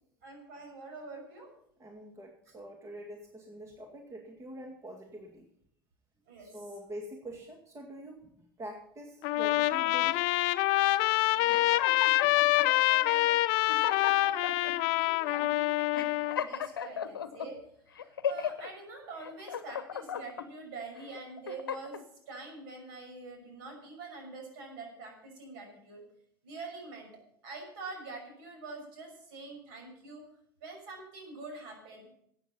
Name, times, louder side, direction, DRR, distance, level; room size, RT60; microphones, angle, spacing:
voice 1, 0.2-1.5 6.3-6.6 11.3-11.8 12.5-13.5 14.1-26.0 26.4-27.1 27.4-30.3 30.6-32.1, right 3 dB, 65° right, 2 dB, 5.9 m, -45 dB
voice 2, 1.8-5.5 6.4-8.3 8.6-10.2, right 1 dB, 25° right, 2 dB, 2.1 m, -45 dB
Trumpet, 9.2-16.4, left 18 dB, 60° left, 0.5 m, -26 dB
sound 1, 11.5-12.7 13.3-13.4 13.7-14.7 15.3-15.5 15.9-17.5 18.0-18.7 19.2-20.5 21.0-22.0, left 8 dB, 85° left, 0.8 m, -36 dB
13.5 x 8.8 x 5.4 m, 0.70 s
hypercardioid pair, 80°, 11 cm